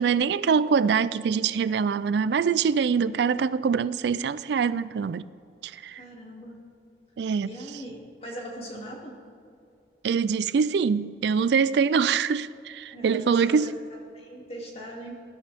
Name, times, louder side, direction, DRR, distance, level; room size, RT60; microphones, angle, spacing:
voice 1, 0.0-5.3 5.6-6.0 7.2-7.5 10.0-13.7, right 6 dB, 70° right, 0.3 m, -24 dB
voice 2, 6.0-6.6 7.4-9.2 12.9-13.7 14.1-15.1, right 1 dB, 35° left, 2.5 m, -40 dB
20.5 x 11.5 x 3.5 m
head